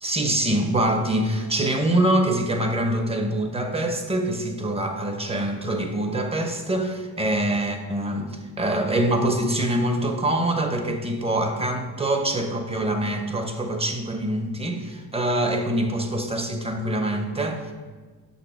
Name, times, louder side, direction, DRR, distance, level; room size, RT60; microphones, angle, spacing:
voice 1, 0.0-17.7, right 1 dB, 15° right, 4 dB, 1.0 m, -24 dB
6.9 x 6.0 x 4.5 m, 1.4 s
cardioid pair, 105°, 38 cm